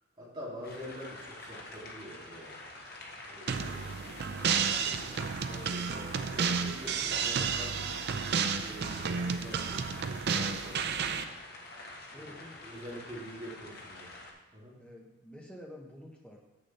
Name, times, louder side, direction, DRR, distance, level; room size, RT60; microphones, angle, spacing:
voice 1, 0.2-2.5 3.3-3.9 4.7-7.9 8.5-11.2 12.1-12.4 12.6-14.1 14.5-14.8, equal, 25° right, -6 dB, 2.3 m, -46 dB
sound 1, 0.6-14.3, left 2 dB, 45° left, 1.1 m, -47 dB
sound 2, 3.5-11.2, right 6 dB, 50° right, 0.4 m, -32 dB
voice 2, 12.1-13.1 14.8-16.4, left 1 dB, 5° left, -1 dB, 1.0 m, -50 dB
7.4 x 6.6 x 4.2 m, 1.1 s
head